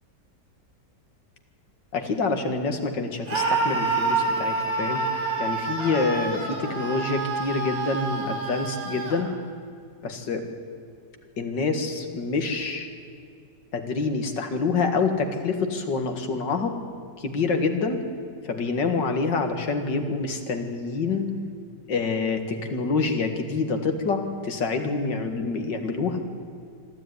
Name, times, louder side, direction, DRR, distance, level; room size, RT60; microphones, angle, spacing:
voice 1, 1.9-5.0 5.4-9.3 10.0-10.4 11.4-12.9 13.7-16.8 17.2-18.0 18.4-21.3 21.9-26.2, left 4 dB, 90° left, 6 dB, 2.5 m, -26 dB
Screaming, 3.3-9.2, right 3 dB, 55° right, 3.8 m, -27 dB
25.5 x 13.0 x 9.7 m, 2.3 s
omnidirectional pair, 1.9 m